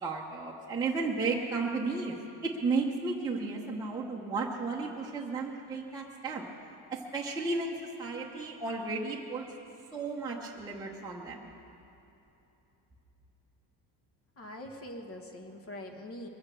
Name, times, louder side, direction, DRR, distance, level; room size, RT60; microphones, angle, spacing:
voice 1, 0.0-2.2 2.4-6.4 6.9-9.4 9.9-11.5, right 3 dB, 10° right, -4 dB, 0.9 m, -33 dB
voice 2, 14.4-16.3, left 1 dB, 35° left, 4 dB, 1.5 m, -43 dB
22.0 x 8.0 x 6.8 m, 3.0 s
cardioid pair, 160°, 40 cm